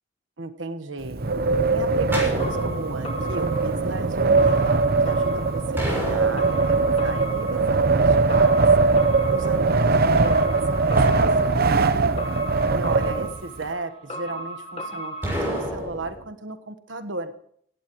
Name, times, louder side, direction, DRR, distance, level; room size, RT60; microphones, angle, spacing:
voice 1, 0.4-1.2 1.7-8.6 9.3-11.9 12.7-17.3, right 2 dB, 75° right, 10 dB, 1.4 m, -35 dB
Wind, 1.0-13.6, right 3 dB, 55° right, 0.9 m, -21 dB
sound 1, 2.1-3.3 5.8-7.1 11.0-12.4 15.2-16.2, equal, 10° right, 6.6 m, -30 dB
sound 2, 2.4-15.7, equal, 30° left, 1.5 m, -37 dB
17.0 x 16.5 x 3.2 m, 0.64 s
head